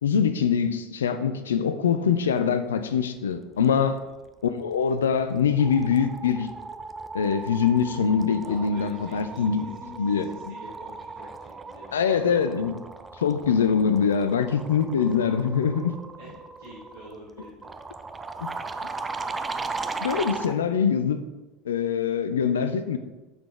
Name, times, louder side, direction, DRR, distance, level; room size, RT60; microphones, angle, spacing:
voice 1, 0.0-4.0 4.4-6.5 7.1-9.6 10.0-10.5 11.9-12.8 13.2-15.9 18.4-18.5 20.0-21.2 21.7-23.0, left 6 dB, 70° left, 11 dB, 0.5 m, -23 dB
voice 2, 1.5-2.1 3.5-3.9 8.4-12.1 16.2-17.7, equal, 75° right, -12 dB, 2.5 m, -46 dB
sound 1, 4.7-5.0 5.3-20.6, right 3 dB, 15° right, 0.4 m, -37 dB
10.0 x 4.1 x 3.2 m, 1.1 s
figure-of-eight pair, 75°, 0 cm